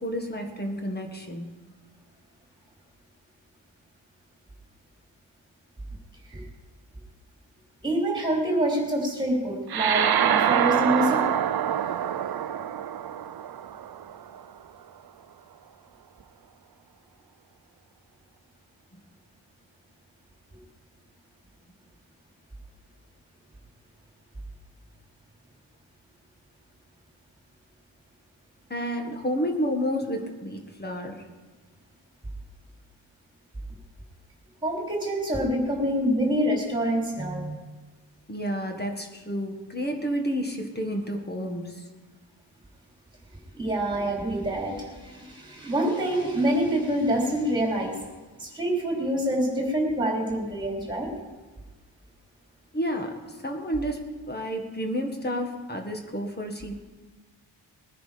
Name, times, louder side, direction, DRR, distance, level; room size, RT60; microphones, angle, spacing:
voice 1, 0.0-1.5 28.7-31.2 38.3-41.8 52.7-56.8, equal, 20° left, 4 dB, 1.7 m, -30 dB
voice 2, 7.8-11.2 34.6-37.6 43.6-48.0 48.4-51.1, right 1 dB, 10° right, -1 dB, 3.5 m, -26 dB
sound 1, 9.7-14.4, right 9 dB, 55° right, 0.6 m, -25 dB
21.0 x 10.0 x 5.1 m, 1.3 s
wide cardioid pair, 165°, 46 cm